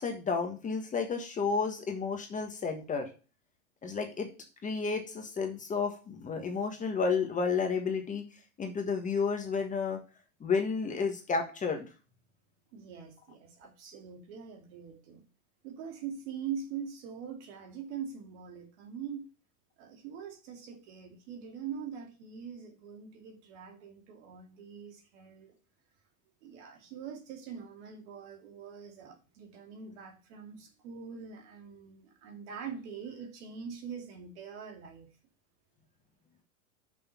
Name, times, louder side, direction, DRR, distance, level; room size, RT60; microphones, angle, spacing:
voice 1, 0.0-3.1 3.8-4.3 4.6-8.2 8.6-10.0 10.4-11.9, left 5 dB, 15° left, 1.4 m, -31 dB
voice 2, 12.7-15.2 15.6-19.3 19.8-25.5 26.4-35.1, right 7 dB, 55° right, 2.5 m, -43 dB
6.4 x 5.4 x 7.0 m
hypercardioid pair, 130°, 43 cm